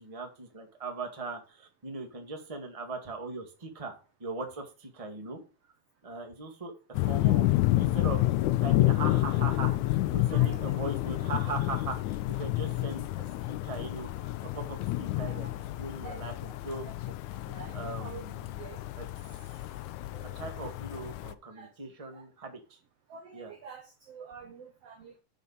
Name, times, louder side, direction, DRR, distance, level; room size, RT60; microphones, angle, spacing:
voice 1, 0.0-3.9 4.2-5.4 6.0-7.5 7.7-8.2 8.6-15.5 15.8-16.9 17.7-18.6 19.0-19.1 20.3-22.8 23.3-23.5, right 3 dB, 15° right, 4 dB, 1.2 m, -40 dB
sound 1, 6.9-21.3, left 16 dB, 75° left, 1.8 m, -29 dB
voice 2, 10.3-10.6 15.2-15.5 16.0-16.3 16.8-16.9 17.5-18.2 18.6-18.8 20.1-20.3 21.5-21.7 22.1-22.3 23.1-25.2, right 6 dB, 70° right, 7 dB, 1.4 m, -47 dB
9.8 x 5.8 x 5.1 m, 0.33 s
omnidirectional pair, 4.0 m